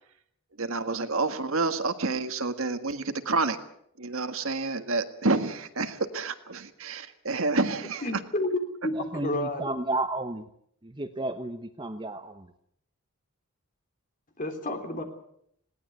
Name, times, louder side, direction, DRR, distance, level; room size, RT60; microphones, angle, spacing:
voice 1, 0.6-3.6 4.0-8.0, right 3 dB, 65° right, 8 dB, 1.7 m, -29 dB
voice 2, 8.0-9.0 9.2-9.7 14.4-15.0, left 1 dB, 35° left, 6 dB, 3.4 m, -30 dB
voice 3, 8.9-10.5 10.8-12.5, right 2 dB, 20° right, 8 dB, 0.9 m, -32 dB
20.5 x 18.0 x 8.0 m, 0.70 s
head